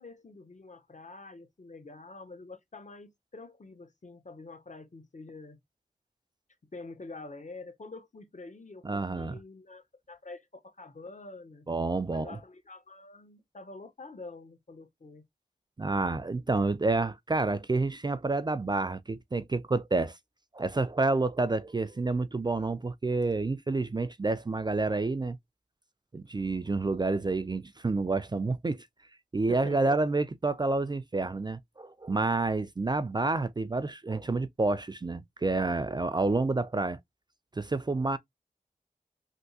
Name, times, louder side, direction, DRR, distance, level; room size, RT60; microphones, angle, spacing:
voice 1, 0.0-5.6 6.7-11.6 12.1-15.2 29.5-30.0, left 3 dB, 50° left, 0.9 m, -46 dB
voice 2, 8.8-9.4 11.7-12.4 15.8-20.2 20.5-25.4 26.1-28.9 29.3-37.0 37.6-38.2, right 3 dB, 25° right, 0.4 m, -29 dB
3.4 x 2.5 x 2.7 m
cardioid pair, 40°, 16 cm